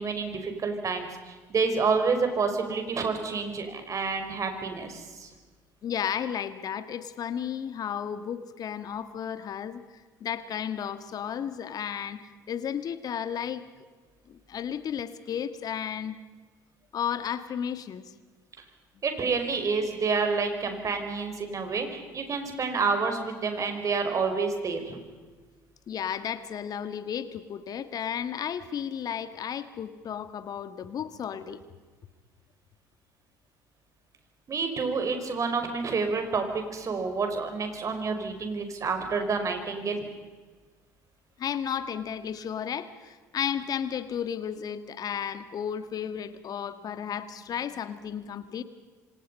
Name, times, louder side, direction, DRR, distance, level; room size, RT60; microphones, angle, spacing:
voice 1, 0.0-5.3 19.0-25.0 34.5-40.1, right 4 dB, 40° right, 6 dB, 5.2 m, -29 dB
voice 2, 5.8-9.8 10.2-13.7 14.3-16.2 16.9-18.1 25.9-31.6 41.4-48.6, left 8 dB, 45° left, 12 dB, 1.8 m, -33 dB
27.0 x 26.0 x 5.6 m, 1.4 s
hypercardioid pair, 60°, 9 cm